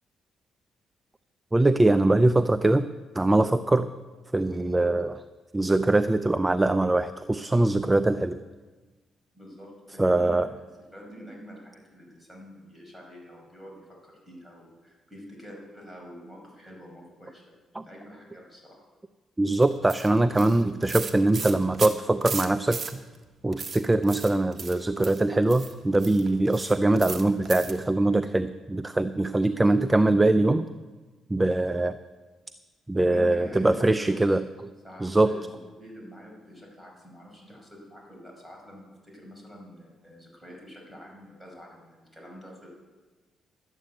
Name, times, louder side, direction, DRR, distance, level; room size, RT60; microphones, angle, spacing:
voice 1, 1.5-2.9 3.1-3.9 4.3-5.2 5.5-8.4 10.0-10.5 17.7-17.8 19.4-22.8 23.4-30.7 31.3-32.0 32.9-34.4 35.0-35.3, right 2 dB, 15° right, 12 dB, 0.5 m, -22 dB
voice 2, 9.3-10.5 10.9-18.8 29.3-29.5 33.0-34.4 34.8-42.7, equal, ahead, -3 dB, 5.6 m, -46 dB
sound 1, 19.6-23.2 23.5-27.9, right 5 dB, 40° right, 1.4 m, -37 dB
12.5 x 9.1 x 8.0 m, 1.3 s
cardioid pair, 90°, 0 cm